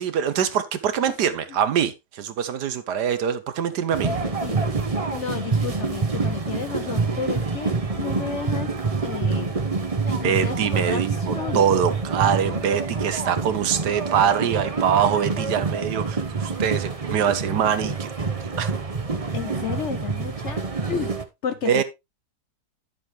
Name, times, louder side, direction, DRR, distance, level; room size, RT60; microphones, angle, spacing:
voice 1, 0.0-4.1 10.1-18.1 18.6-18.7 21.6-21.8, right 8 dB, 75° right, 1.5 m, -24 dB
sound 1, 3.9-21.2, right 4 dB, 30° right, 0.8 m, -27 dB
voice 2, 4.1-4.6 5.1-8.7 9.0-9.5 10.0-11.6 19.3-21.2 21.4-21.8, left 7 dB, 55° left, 0.8 m, -32 dB
11.0 x 7.2 x 3.1 m
omnidirectional pair, 1.8 m